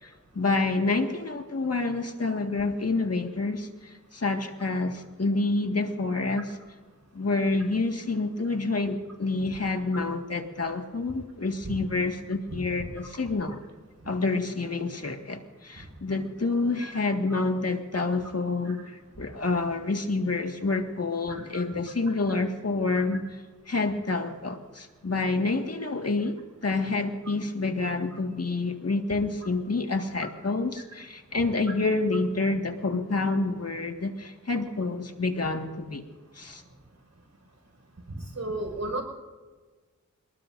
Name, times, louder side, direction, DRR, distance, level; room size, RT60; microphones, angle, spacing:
voice 1, 0.0-6.6 7.1-13.6 14.1-36.0 36.3-36.6, left 3 dB, 55° left, 4 dB, 1.8 m, -28 dB
voice 2, 38.1-39.0, right 2 dB, 65° right, 2 dB, 5.6 m, -34 dB
28.5 x 19.5 x 2.6 m, 1.4 s
wide cardioid pair, 50°, 30 cm